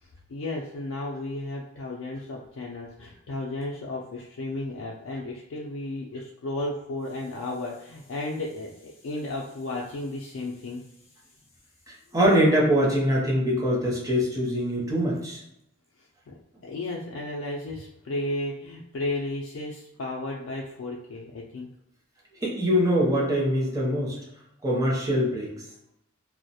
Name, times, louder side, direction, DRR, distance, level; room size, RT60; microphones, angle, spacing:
voice 1, 0.0-10.8 16.3-21.7, left 2 dB, 85° left, -3 dB, 0.4 m, -34 dB
voice 2, 12.1-15.4 22.4-24.2 24.6-25.5, equal, 15° right, -4 dB, 0.5 m, -23 dB
2.3 x 2.0 x 2.7 m, 0.82 s
head